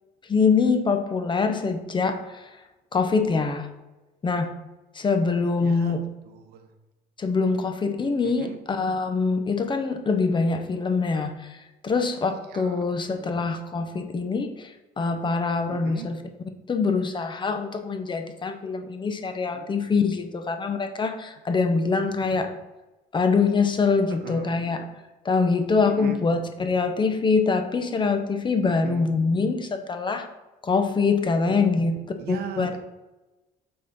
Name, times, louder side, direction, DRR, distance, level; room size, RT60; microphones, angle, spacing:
voice 1, 0.2-2.5 2.9-3.7 4.2-4.5 4.9-6.0 7.2-16.2 16.7-22.5 23.1-24.8 25.2-30.3 30.6-32.7, left 4 dB, 30° left, 7 dB, 0.8 m, -24 dB
voice 2, 5.6-6.7 8.2-8.6 12.5-13.5 15.7-16.1 19.5-19.7 21.9-22.4 24.1-24.5 25.8-26.2 28.7-29.1 31.5-32.8, right 7 dB, 70° right, 7 dB, 0.9 m, -40 dB
6.6 x 3.9 x 5.5 m, 1.1 s
cardioid pair, 110°, 17 cm